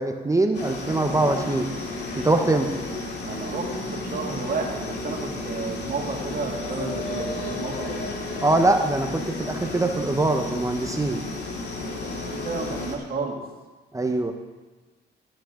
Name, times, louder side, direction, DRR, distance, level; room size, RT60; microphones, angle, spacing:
voice 1, 0.0-1.7 2.2-2.7 8.4-11.2 13.9-14.3, right 2 dB, 15° right, 5 dB, 0.9 m, -23 dB
sound 1, 0.5-13.0, left 2 dB, 60° left, 2.0 m, -32 dB
voice 2, 3.2-8.1 12.2-13.4, right 3 dB, 50° right, -1 dB, 2.4 m, -32 dB
14.0 x 8.9 x 3.8 m, 1.2 s
cardioid pair, 90°, 20 cm